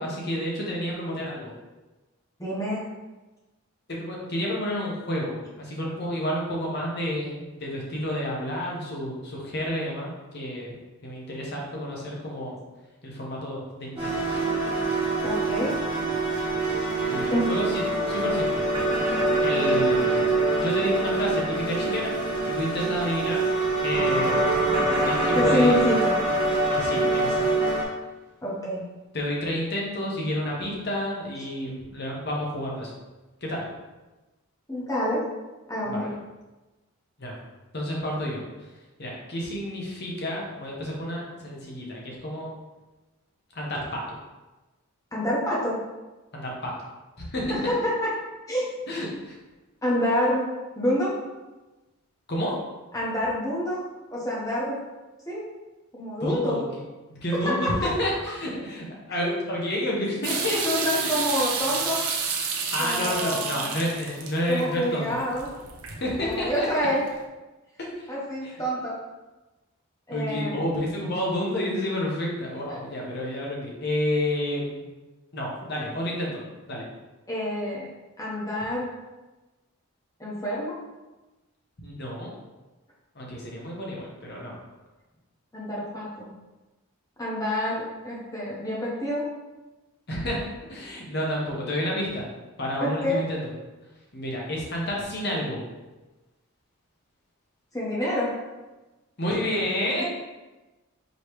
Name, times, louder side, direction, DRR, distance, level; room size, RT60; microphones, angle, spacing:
voice 1, 0.0-1.5 3.9-10.8 11.0-12.6 13.0-14.3 17.1-17.6 18.1-18.6 19.4-20.3 20.5-22.2 22.5-23.4 23.8-24.5 24.9-25.8 26.7-27.5 29.1-32.9 33.4-33.6 35.8-36.1 37.2-37.4 37.7-38.4 39.0-42.5 43.5-44.0 46.3-46.7 47.2-47.5 48.9-49.4 52.3-52.5 56.2-56.6 57.1-60.6 62.7-65.2 66.0-66.9 67.8-68.1 68.4-68.5 70.1-74.8 75.3-76.4 76.7-76.9 81.8-82.3 83.1-84.6 90.1-92.2 92.6-93.4 94.1-95.6 99.2-100.0, left 1 dB, 45° left, -3 dB, 1.0 m, -30 dB
voice 2, 2.4-2.8 15.2-15.8 16.8-16.9 17.3-17.4 25.3-26.2 28.4-28.9 34.7-35.2 35.7-36.1 45.1-45.8 47.5-48.1 48.5-48.7 49.8-51.2 52.9-53.8 54.1-54.8 55.3-55.4 55.9-56.6 57.4-57.9 59.2-59.3 60.6-62.0 62.8-63.8 64.5-65.5 66.0-67.0 68.1-69.0 70.1-70.6 72.7-72.8 77.3-77.9 78.2-78.9 80.2-80.8 85.5-86.3 87.2-89.3 92.8-93.2 97.7-98.3, equal, 15° left, -6 dB, 1.0 m, -27 dB
sound 1, 14.0-27.8, right 2 dB, 25° right, 1.3 m, -24 dB
sound 2, 60.2-67.1, right 5 dB, 80° right, 0.6 m, -31 dB
5.1 x 3.1 x 3.1 m, 1.1 s
head